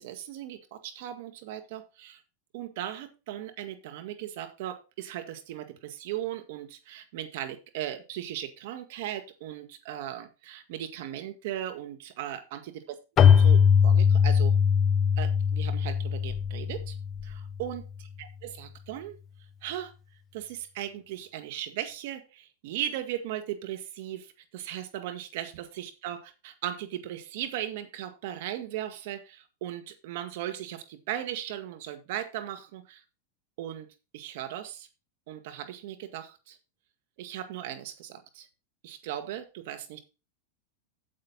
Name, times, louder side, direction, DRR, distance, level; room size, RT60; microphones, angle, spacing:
voice 1, 0.0-2.2 2.5-12.8 13.4-14.6 15.2-17.0 17.2-17.8 18.2-19.2 19.6-19.9 20.3-33.0 33.6-33.9 34.1-34.9 35.3-36.6 37.2-38.5 38.8-40.0, right 12 dB, 65° right, 8 dB, 1.9 m, -37 dB
Keyboard (musical), 13.2-17.7, left 7 dB, 35° left, 0.4 m, -21 dB
9.1 x 7.5 x 4.1 m, 0.29 s
hypercardioid pair, 110°, 0 cm